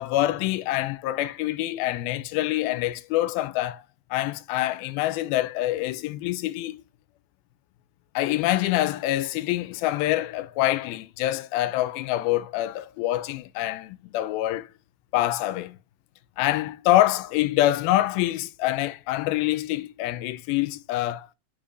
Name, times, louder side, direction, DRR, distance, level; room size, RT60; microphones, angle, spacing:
voice 1, 0.0-3.8 4.1-6.8 8.2-14.7 15.1-15.8 16.4-21.3, left 15 dB, 85° left, 2.5 m, -25 dB
8.8 x 4.9 x 2.5 m
omnidirectional pair, 4.2 m